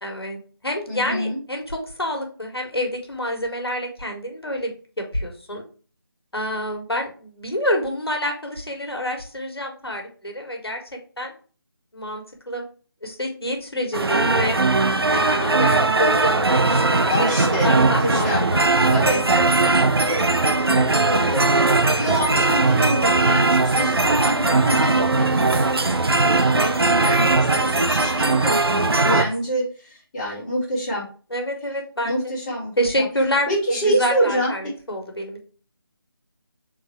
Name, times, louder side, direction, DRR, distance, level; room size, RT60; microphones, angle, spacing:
voice 1, 0.0-5.6 6.3-10.8 11.2-11.3 11.9-12.6 13.0-14.6 15.0-18.7 19.9-20.0 20.4-20.7 23.0-23.3 26.2-26.5 29.0-29.2 31.3-32.2 32.8-33.5 33.8-35.4, equal, 85° left, 2 dB, 1.4 m, -27 dB
voice 2, 0.9-1.4 17.1-18.4 18.9-19.2 21.1-31.0 32.0-33.0 33.5-34.7, equal, 20° left, -6 dB, 1.3 m, -27 dB
sound 1, 13.9-29.2, right 3 dB, 80° right, 0.6 m, -19 dB
3.7 x 2.6 x 4.5 m, 0.38 s
figure-of-eight pair, 160°, 13 cm